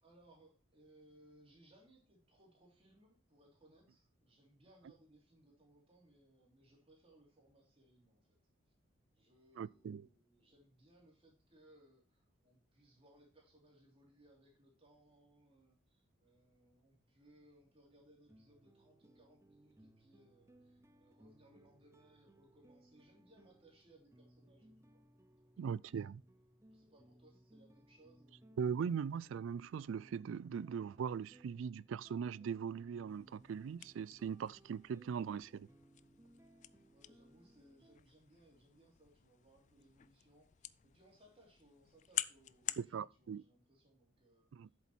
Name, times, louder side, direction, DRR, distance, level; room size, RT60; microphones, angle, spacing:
voice 1, 0.0-8.4 9.1-25.0 25.3-26.0 26.7-28.6 36.9-44.5, right 1 dB, 30° right, 3.1 m, -67 dB
voice 2, 9.6-10.1 25.6-26.2 28.6-35.7 42.8-43.4 44.5-44.7, right 7 dB, 70° right, 0.3 m, -40 dB
sound 1, 18.2-38.0, right 1 dB, 15° right, 0.6 m, -65 dB
sound 2, 33.1-42.9, left 13 dB, 35° left, 0.3 m, -48 dB
8.1 x 7.1 x 4.3 m
head